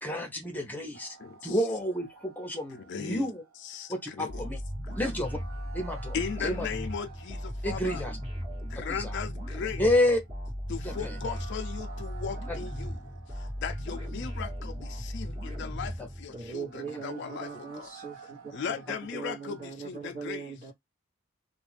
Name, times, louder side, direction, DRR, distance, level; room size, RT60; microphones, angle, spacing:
voice 1, 0.0-1.2 1.4-3.4 3.9-4.6 5.0-5.4 5.7-6.7 7.6-8.2 8.9-9.2 9.8-10.2 10.8-11.2 12.5-12.6 16.0-16.1 16.9-17.0, left 1 dB, 10° left, 0.7 m, -30 dB
sound 1, 0.9-19.7, right 5 dB, 90° right, 0.7 m, -53 dB
voice 2, 1.2-1.5 2.9-3.3 3.7-4.4 4.9-5.0 6.1-8.0 8.6-9.8 10.7-12.9 13.3-17.9 18.5-20.6, left 6 dB, 55° left, 0.4 m, -37 dB
sound 2, 4.3-16.6, equal, 30° right, 1.1 m, -37 dB
voice 3, 16.3-18.7 19.1-20.7, right 6 dB, 50° right, 0.9 m, -40 dB
2.4 x 2.2 x 3.2 m
head